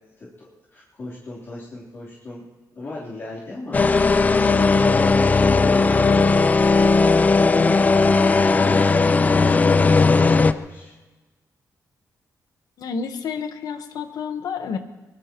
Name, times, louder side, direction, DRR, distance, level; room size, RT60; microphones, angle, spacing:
voice 1, 0.2-2.4 2.7-10.9, left 2 dB, 40° left, -7 dB, 3.4 m, -36 dB
sound 1, 3.7-10.5, left 4 dB, 25° left, 0.5 m, -17 dB
voice 2, 12.8-14.8, left 6 dB, 75° left, 7 dB, 1.2 m, -29 dB
22.5 x 21.5 x 3.0 m, 1.2 s
cardioid pair, 125°, 7 cm